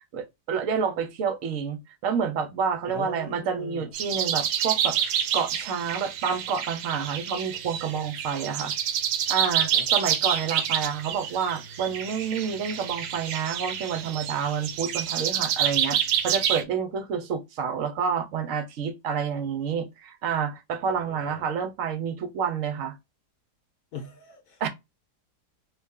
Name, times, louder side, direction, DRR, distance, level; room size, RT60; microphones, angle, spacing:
voice 1, 0.1-1.8 2.0-5.0 5.3-8.7 9.3-16.0 16.2-22.9 24.6-24.7, right 6 dB, 60° right, 0.9 m, -29 dB
voice 2, 2.9-3.9 9.6-9.9 20.9-21.4 23.9-24.7, left 5 dB, 65° left, 1.0 m, -41 dB
sound 1, 3.9-16.6, right 9 dB, 85° right, 1.2 m, -28 dB
3.2 x 2.6 x 3.6 m
omnidirectional pair, 1.8 m